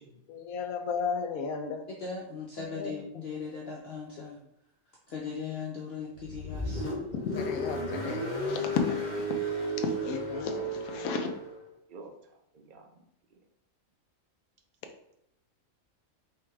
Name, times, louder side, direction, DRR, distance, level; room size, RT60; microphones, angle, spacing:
voice 1, 0.3-1.8 2.7-2.9 7.3-9.1 9.4-11.3, left 5 dB, 85° left, 6 dB, 1.1 m, -34 dB
voice 2, 2.0-4.4 5.1-7.0, left 5 dB, 55° left, -2 dB, 0.8 m, -39 dB
Car, 6.1-11.6, equal, 35° left, 1.2 m, -33 dB
voice 3, 11.9-13.0 13.3-13.4, right 3 dB, 45° right, 2 dB, 0.7 m, -51 dB
4.3 x 3.5 x 3.2 m, 0.80 s
omnidirectional pair, 1.4 m